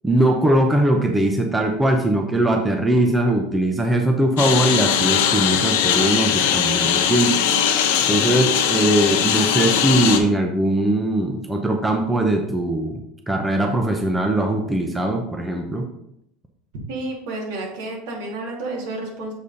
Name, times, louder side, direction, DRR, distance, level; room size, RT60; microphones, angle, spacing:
voice 1, 0.0-7.3 8.1-13.0 13.3-15.8, right 1 dB, 5° right, 3 dB, 0.6 m, -20 dB
Engine, 4.4-10.2, left 8 dB, 80° left, 1.0 m, -20 dB
voice 2, 16.9-19.3, right 2 dB, 70° right, -1 dB, 2.6 m, -30 dB
6.9 x 4.1 x 5.1 m, 0.79 s
supercardioid pair, 155°, 0 cm